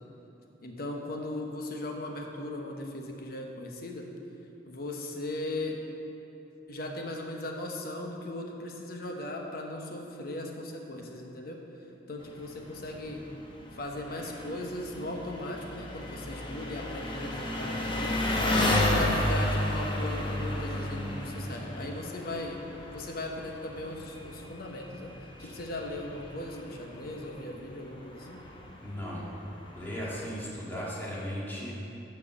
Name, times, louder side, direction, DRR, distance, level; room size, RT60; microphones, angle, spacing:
voice 1, 0.6-4.1 4.6-5.8 6.7-11.6 12.1-13.3 13.7-18.2 18.5-22.6 22.9-25.1 25.4-28.4, left 1 dB, 55° left, 1 dB, 1.0 m, -38 dB
Engine, 12.2-30.3, left 1 dB, 30° left, 0.9 m, -33 dB
voice 2, 21.0-21.9 25.4-25.5 28.8-29.2 29.7-31.7, equal, 10° left, -7 dB, 1.9 m, -37 dB
10.5 x 4.6 x 6.9 m, 2.9 s
head